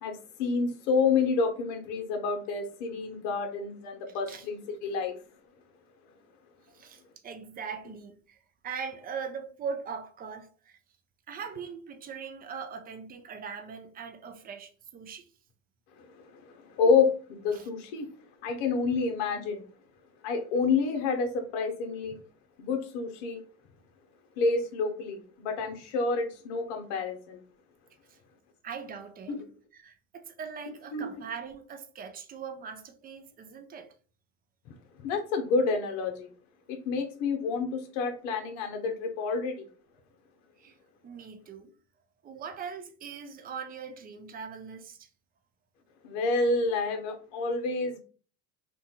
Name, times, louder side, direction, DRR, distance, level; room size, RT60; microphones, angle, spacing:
voice 1, 0.0-5.1 16.0-16.1 16.3-18.1 18.4-19.6 20.2-22.2 22.6-23.4 24.4-27.4 29.3-29.4 30.9-31.2 35.0-36.3 36.7-39.7 46.0-48.0, left 4 dB, 70° left, 0.7 m, -29 dB
voice 2, 6.7-10.8 11.3-15.3 17.5-17.7 28.1-28.2 28.6-29.4 29.7-33.9 40.6-40.7 41.0-41.7 42.2-45.1, right 6 dB, 25° right, 0.5 m, -41 dB
2.8 x 2.2 x 2.8 m
hypercardioid pair, 90°, 39 cm